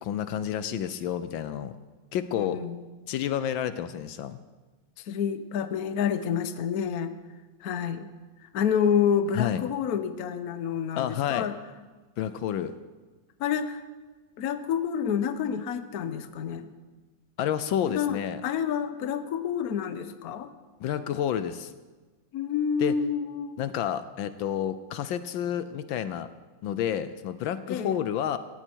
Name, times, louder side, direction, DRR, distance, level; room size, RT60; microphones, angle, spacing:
voice 1, 0.0-1.8 2.1-2.6 3.1-4.4 9.3-9.6 11.0-11.5 12.2-12.7 17.4-18.4 20.8-21.7 22.8-22.9 23.6-26.3 26.6-28.4, left 10 dB, 75° left, 13 dB, 1.4 m, -29 dB
voice 2, 2.4-2.9 5.0-7.1 7.6-8.1 8.5-11.6 13.4-13.8 14.4-16.7 17.9-20.5 22.3-23.7 27.7-28.0, left 7 dB, 55° left, 10 dB, 1.2 m, -28 dB
17.5 x 15.5 x 4.6 m, 1.3 s
omnidirectional pair, 2.2 m